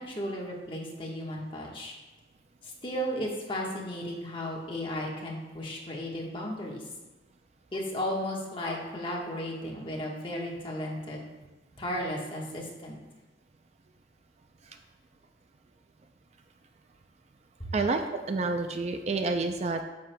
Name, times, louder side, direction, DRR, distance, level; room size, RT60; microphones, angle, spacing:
voice 1, 0.0-1.9 2.6-6.8 7.7-11.2 11.8-13.0 17.6-17.7, equal, 30° left, -2 dB, 1.3 m, -34 dB
voice 2, 17.7-19.8, right 3 dB, 35° right, 6 dB, 0.4 m, -29 dB
9.4 x 7.3 x 2.2 m, 1.1 s
head